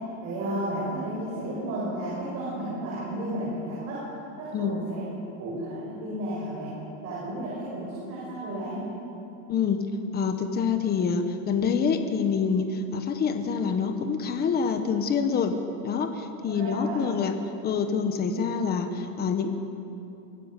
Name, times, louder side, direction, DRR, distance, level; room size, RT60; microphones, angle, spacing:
voice 1, 0.2-4.0 4.4-5.1 5.4-6.7 7.0-8.9 16.5-17.1, right 1 dB, 40° right, -6 dB, 6.6 m, -32 dB
voice 2, 9.5-9.9 10.1-15.6 15.8-17.3 17.6-19.5, left 6 dB, 25° left, 7 dB, 1.2 m, -26 dB
24.0 x 16.5 x 6.7 m, 2.8 s
supercardioid pair, 165°, 41 cm